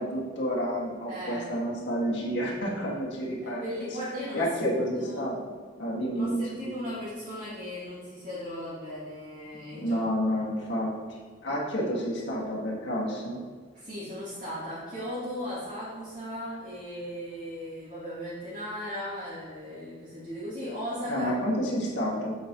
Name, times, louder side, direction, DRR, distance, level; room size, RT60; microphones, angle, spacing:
voice 1, 0.0-3.9 4.3-5.4 5.8-6.7 9.7-13.4 21.1-22.4, equal, 70° left, -4 dB, 1.8 m, -30 dB
voice 2, 1.1-1.5 3.4-4.5 5.0-5.3 6.1-10.0 13.7-21.4, equal, 40° right, -12 dB, 2.4 m, -37 dB
8.0 x 7.8 x 3.0 m, 1.5 s
head